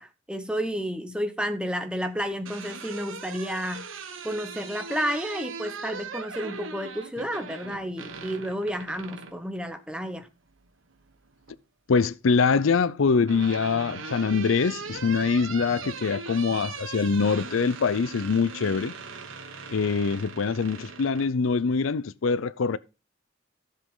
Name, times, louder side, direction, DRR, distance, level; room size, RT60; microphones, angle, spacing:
voice 1, 0.0-3.8 4.2-10.3, equal, 5° right, 1.0 m, -31 dB
sound 1, 2.2-9.4 10.9-11.6 12.8-21.3, right 5 dB, 75° right, 1.4 m, -39 dB
voice 2, 11.9-18.9 19.7-22.8, left 5 dB, 75° left, 0.5 m, -24 dB
14.0 x 7.4 x 3.8 m
head